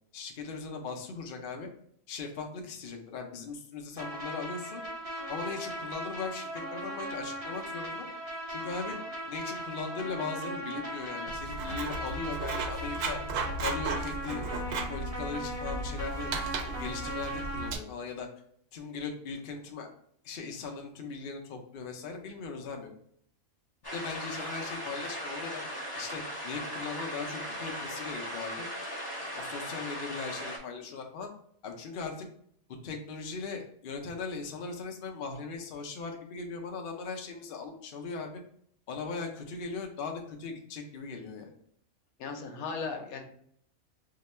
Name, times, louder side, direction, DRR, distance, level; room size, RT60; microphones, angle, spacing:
voice 1, 0.1-1.7 2.1-4.8 5.3-8.1 8.5-9.0 9.3-13.2 13.6-14.5 14.9-16.3 16.6-18.3 18.7-19.9 20.2-22.9 23.9-25.6 26.0-28.7 29.2-31.3 31.6-32.3 32.8-38.4 38.9-41.5, left 4 dB, 60° left, 3 dB, 0.6 m, -39 dB
sound 1, 4.0-17.7, right 1 dB, 30° right, 0.8 m, -38 dB
Writing, 11.3-17.8, right 3 dB, 70° right, 0.9 m, -36 dB
sound 2, 23.8-30.6, equal, 20° left, 0.7 m, -38 dB
voice 2, 42.2-43.2, left 5 dB, 85° left, 4 dB, 1.1 m, -36 dB
2.8 x 2.2 x 4.1 m, 0.66 s
omnidirectional pair, 1.5 m